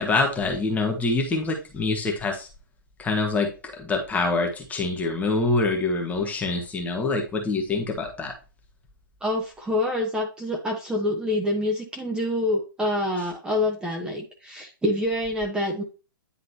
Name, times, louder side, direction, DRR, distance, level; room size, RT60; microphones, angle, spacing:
voice 1, 0.0-2.5 3.0-8.3, left 3 dB, 15° left, 1 dB, 1.4 m, -25 dB
voice 2, 9.2-15.8, left 1 dB, 5° right, 0 dB, 1.3 m, -26 dB
10.0 x 3.8 x 2.9 m, 0.32 s
figure-of-eight pair, 115°, 12 cm